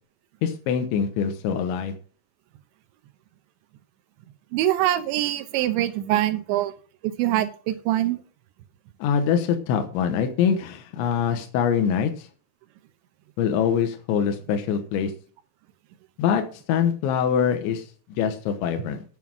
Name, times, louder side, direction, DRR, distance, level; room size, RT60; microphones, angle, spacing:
voice 1, 0.4-1.9 9.0-12.3 13.4-15.1 16.2-17.9 18.2-19.0, left 7 dB, 85° left, 6 dB, 3.3 m, -24 dB
voice 2, 4.5-6.7 7.0-8.2, right 13 dB, 80° right, 11 dB, 3.0 m, -24 dB
11.0 x 7.4 x 6.0 m, 0.42 s
omnidirectional pair, 5.4 m